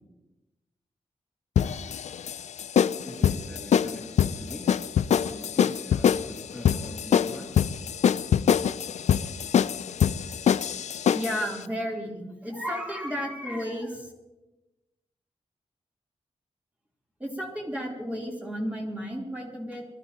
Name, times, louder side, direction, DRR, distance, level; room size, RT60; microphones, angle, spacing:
sound 1, 1.6-11.4, left 8 dB, 85° left, 0.4 m, -24 dB
voice 1, 3.0-7.6, left 1 dB, 5° left, -4 dB, 2.7 m, -42 dB
voice 2, 11.1-14.1 17.2-19.9, equal, 10° right, -3 dB, 3.4 m, -33 dB
23.5 x 13.5 x 3.0 m, 1.1 s
wide cardioid pair, 115°, 11 cm